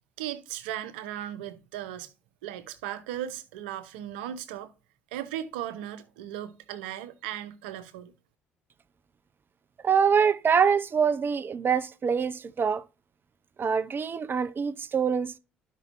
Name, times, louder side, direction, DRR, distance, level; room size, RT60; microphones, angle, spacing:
voice 1, 0.2-2.1 2.4-4.7 5.1-8.1, right 11 dB, 75° right, 0.9 m, -37 dB
voice 2, 9.8-12.8 13.6-15.4, right 6 dB, 40° right, 0.7 m, -25 dB
12.5 x 5.5 x 2.6 m
hypercardioid pair, 50°, 6 cm